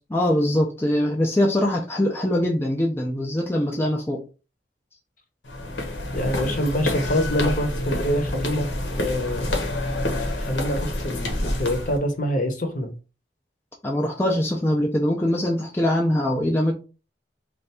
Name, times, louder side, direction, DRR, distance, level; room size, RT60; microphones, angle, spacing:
voice 1, 0.1-4.2 13.8-16.7, left 1 dB, 15° left, -1 dB, 0.5 m, -22 dB
sound 1, 5.4-12.0, left 1 dB, 75° left, 1.0 m, -27 dB
voice 2, 6.1-8.7 9.0-9.7 10.4-12.9, equal, 45° left, 5 dB, 0.8 m, -25 dB
3.3 x 2.5 x 4.2 m, 0.33 s
head